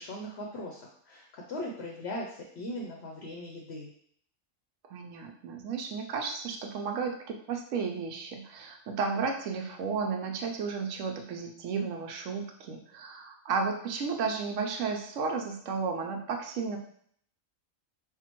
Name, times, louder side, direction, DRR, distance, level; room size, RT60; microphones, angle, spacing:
voice 1, 0.0-3.9, left 1 dB, 60° left, 0 dB, 0.8 m, -39 dB
voice 2, 4.9-16.8, right 5 dB, 70° right, 3 dB, 0.9 m, -33 dB
5.6 x 2.2 x 2.9 m, 0.63 s
omnidirectional pair, 1.4 m